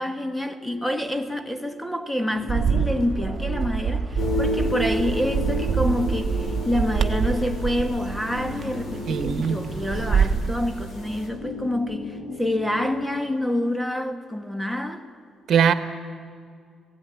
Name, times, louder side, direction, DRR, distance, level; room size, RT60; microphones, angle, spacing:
voice 1, 0.0-15.0, left 1 dB, 5° left, 1.6 m, -27 dB
sound 1, 0.7-13.0, left 2 dB, 90° left, 2.4 m, -39 dB
Bird, 2.5-10.5, right 6 dB, 50° right, 1.1 m, -26 dB
sound 2, 4.2-11.3, left 1 dB, 65° left, 4.3 m, -32 dB
voice 2, 9.1-9.7 15.5-15.7, right 7 dB, 65° right, 1.3 m, -21 dB
17.0 x 16.5 x 9.6 m
cardioid pair, 90°, 0 cm